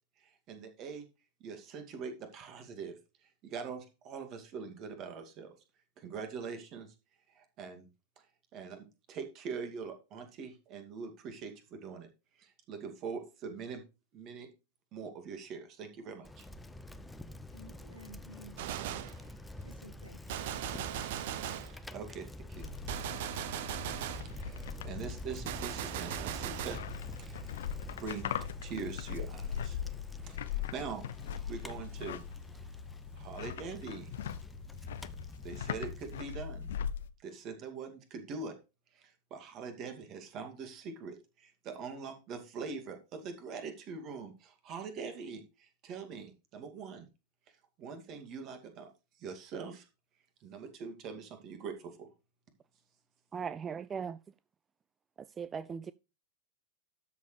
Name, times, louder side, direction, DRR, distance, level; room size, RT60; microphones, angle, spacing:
voice 1, 0.2-1.1 1.4-5.5 6.0-6.9 7.3-7.9 8.5-12.1 12.4-13.8 14.1-14.5 14.9-16.5 21.9-22.7 24.3-26.8 27.2-27.5 28.0-29.8 30.2-31.0 31.5-32.2 33.1-34.1 35.4-36.8 37.2-38.6 38.9-47.1 47.8-48.9 49.2-49.9 50.4-52.1, right 5 dB, 35° right, 2.4 m, -43 dB
Bicycle, 16.2-36.2, left 1 dB, 5° left, 0.7 m, -47 dB
voice 2, 16.7-21.0, equal, 90° right, 1.4 m, -56 dB
Gunshot gunfire, 18.6-19.2 20.3-21.8 22.9-24.3 25.5-26.9, right 11 dB, 50° right, 0.8 m, -38 dB
sound 1, 22.5-37.1, left 8 dB, 60° left, 0.6 m, -41 dB
voice 3, 53.3-54.2 55.4-55.9, right 6 dB, 20° right, 0.4 m, -38 dB
12.5 x 7.0 x 3.3 m
figure-of-eight pair, 90°, 0 cm